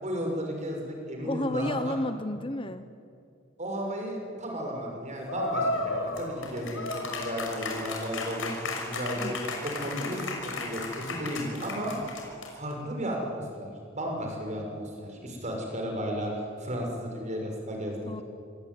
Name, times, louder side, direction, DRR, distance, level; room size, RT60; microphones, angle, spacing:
voice 1, 0.0-1.9 3.6-6.8 7.1-9.4 9.6-11.9 12.5-18.1, equal, 35° right, 1 dB, 6.4 m, -34 dB
voice 2, 1.2-2.9 9.2-9.4 18.1-18.2, left 1 dB, 25° left, 11 dB, 0.9 m, -31 dB
sound 1, 5.3-12.7, left 2 dB, 75° left, 6.1 m, -34 dB
27.0 x 22.5 x 9.7 m, 2.4 s
head